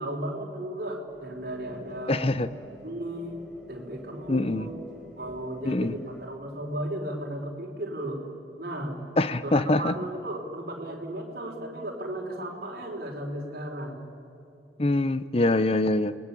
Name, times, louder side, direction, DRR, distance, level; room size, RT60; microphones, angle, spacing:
voice 1, 0.0-2.2 2.8-4.7 5.2-8.3 8.6-9.0 9.4-14.0, right 1 dB, 50° right, -2 dB, 4.5 m, -35 dB
sound 1, 1.1-6.3, right 1 dB, 5° right, 5.0 m, -48 dB
voice 2, 2.1-2.5 4.3-4.7 5.6-5.9 9.2-9.9 14.8-16.2, left 2 dB, 30° left, 14 dB, 0.8 m, -24 dB
29.5 x 21.0 x 8.5 m, 2.7 s
head